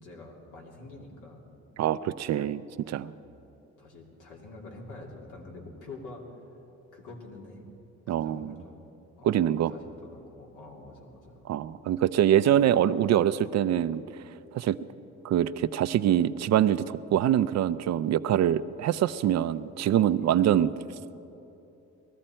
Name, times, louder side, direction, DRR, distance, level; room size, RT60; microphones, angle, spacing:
voice 1, 0.0-1.6 3.0-3.4 3.8-6.5 6.9-7.6 8.1-8.9 9.2-11.4 20.2-20.5, left 2 dB, 80° left, -1 dB, 2.8 m, -46 dB
voice 2, 1.8-3.1 8.1-8.5 9.2-9.7 11.5-14.8 15.2-20.7, right 11 dB, 60° right, 15 dB, 0.5 m, -24 dB
19.5 x 13.5 x 4.4 m, 2.9 s
cardioid pair, 90°, 30 cm